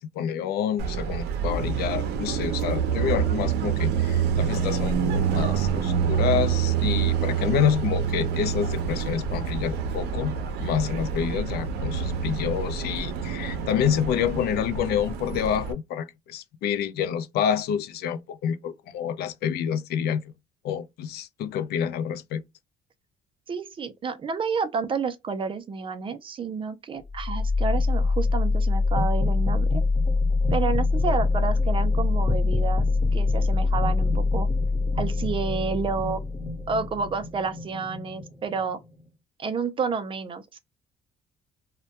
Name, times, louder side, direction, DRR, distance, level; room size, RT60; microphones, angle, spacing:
voice 1, 0.2-10.3 10.6-20.2 20.6-22.4, left 8 dB, 70° left, 0.4 m, -28 dB
Car passing by, 0.8-15.7, right 7 dB, 80° right, 0.5 m, -27 dB
voice 2, 23.5-29.8 30.5-32.9 33.1-34.5 35.0-36.2 36.7-38.8 39.4-40.6, right 5 dB, 30° right, 0.4 m, -30 dB
sound 1, 27.1-39.0, left 3 dB, 15° left, 0.8 m, -24 dB
2.1 x 2.1 x 2.7 m
cardioid pair, 110°, 17 cm